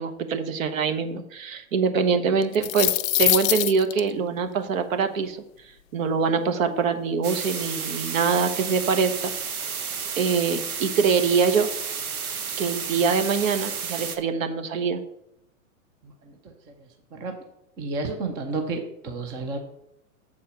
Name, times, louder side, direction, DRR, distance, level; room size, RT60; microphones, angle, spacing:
voice 1, 0.0-5.4 5.9-9.3 10.1-11.7 12.6-15.0, right 5 dB, 65° right, 8 dB, 1.2 m, -24 dB
sound 1, 2.4-4.0, left 15 dB, 70° left, 0.5 m, -23 dB
sound 2, 7.2-14.2, right 6 dB, 90° right, 1.1 m, -32 dB
voice 2, 17.8-19.6, right 3 dB, 10° right, 5 dB, 0.3 m, -30 dB
7.0 x 4.4 x 6.7 m, 0.78 s
hypercardioid pair, 120°, 42 cm